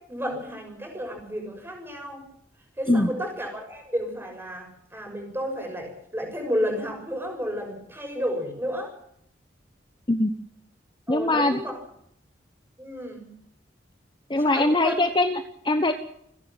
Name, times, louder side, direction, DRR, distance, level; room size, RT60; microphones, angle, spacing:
voice 1, 0.0-2.2 2.8-8.9 11.1-11.8 12.8-13.3 14.3-14.9, equal, 15° right, 2 dB, 6.7 m, -32 dB
voice 2, 11.1-11.6 14.3-15.9, left 2 dB, 25° left, 8 dB, 1.0 m, -22 dB
28.5 x 10.5 x 8.9 m, 0.73 s
head